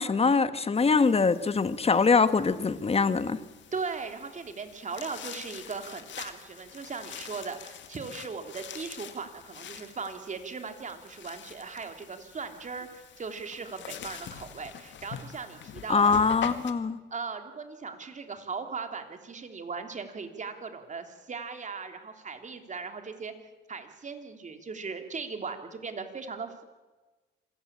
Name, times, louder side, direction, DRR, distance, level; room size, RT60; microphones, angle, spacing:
voice 1, 0.0-3.4 15.9-17.0, left 4 dB, 30° left, 1.4 m, -23 dB
sound 1, 0.7-16.7, left 9 dB, 65° left, 2.0 m, -45 dB
voice 2, 3.7-16.1 17.1-23.3 23.7-26.6, right 5 dB, 40° right, 3.3 m, -38 dB
26.5 x 17.0 x 8.8 m
cardioid pair, 90°, 20 cm